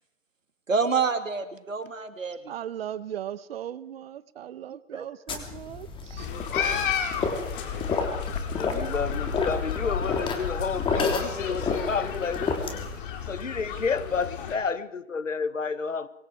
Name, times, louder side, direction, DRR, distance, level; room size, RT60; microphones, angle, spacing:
voice 1, 0.7-2.5 4.9-5.0 6.7-6.8, right 5 dB, 85° right, 2.8 m, -28 dB
voice 2, 2.5-6.3, right 10 dB, 50° right, 1.2 m, -38 dB
sound 1, 5.3-13.0, left 4 dB, 15° left, 3.1 m, -31 dB
sound 2, 6.2-14.6, left 7 dB, 45° left, 3.7 m, -32 dB
voice 3, 8.5-12.6 13.0-16.1, left 5 dB, 80° left, 1.7 m, -30 dB
26.0 x 23.5 x 4.8 m
figure-of-eight pair, 130°, 38 cm